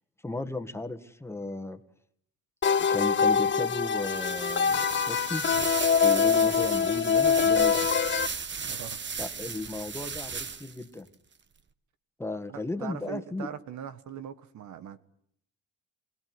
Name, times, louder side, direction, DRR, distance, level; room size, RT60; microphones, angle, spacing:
voice 1, 0.2-1.8 2.8-5.4 6.0-7.7 9.2-11.1 12.2-13.5, left 2 dB, 10° left, 1.9 m, -35 dB
sound 1, 2.6-8.3, left 6 dB, 40° left, 1.0 m, -24 dB
sound 2, 4.0-10.8, right 5 dB, 35° right, 1.4 m, -36 dB
voice 2, 8.6-9.0 12.5-15.0, right 8 dB, 70° right, 1.4 m, -41 dB
26.5 x 18.0 x 9.7 m
cardioid pair, 90°, 30 cm